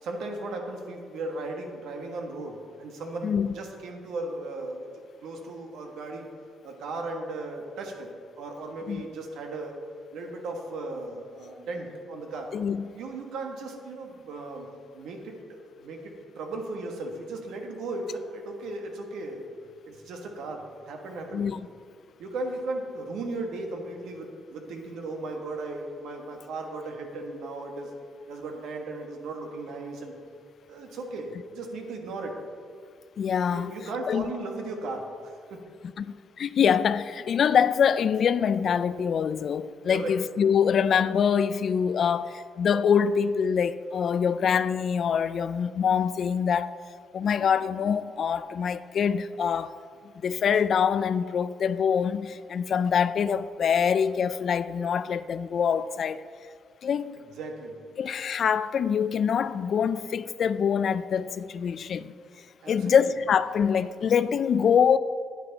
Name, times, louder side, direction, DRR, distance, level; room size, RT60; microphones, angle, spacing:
voice 1, 0.0-4.9 5.2-6.2 6.6-8.1 8.4-9.7 10.1-12.5 12.9-14.7 14.9-19.5 19.8-21.5 22.2-27.9 28.3-30.1 30.7-32.4 33.5-35.3 39.9-40.2 57.2-57.7 62.6-63.0, right 2 dB, 80° right, 1.4 m, -36 dB
voice 2, 3.2-3.5 8.9-9.1 12.5-12.9 21.3-21.6 33.2-33.7 34.1-34.3 36.0-46.7 47.1-49.7 50.2-56.2 56.8-57.2 58.0-62.1 62.7-65.0, left 7 dB, 60° left, 0.3 m, -25 dB
9.6 x 9.5 x 4.0 m
cardioid pair, 90°, 0 cm